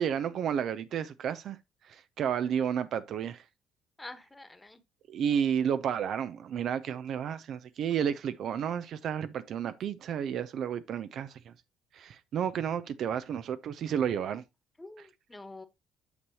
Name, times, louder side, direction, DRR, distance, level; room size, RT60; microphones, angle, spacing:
voice 1, 0.0-1.6 1.9-3.4 5.1-11.5 11.9-14.4, right 8 dB, 60° right, 0.6 m, -31 dB
voice 2, 4.0-4.8 14.8-15.7, left 2 dB, 15° left, 1.4 m, -46 dB
8.2 x 6.8 x 2.9 m
hypercardioid pair, 50°, 0 cm